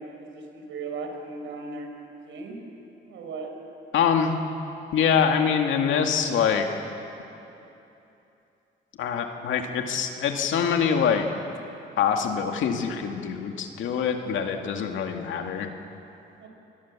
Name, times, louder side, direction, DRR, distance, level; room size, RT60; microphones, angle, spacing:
voice 1, 0.0-1.9 2.3-2.6 3.1-3.5 16.4-16.5, right 4 dB, 75° right, 3 dB, 4.8 m, -37 dB
voice 2, 3.9-4.3 4.9-6.7 9.0-11.3 12.0-15.7, left 7 dB, 75° left, 4 dB, 2.3 m, -24 dB
27.5 x 20.5 x 7.5 m, 2.9 s
cardioid pair, 90°, 20 cm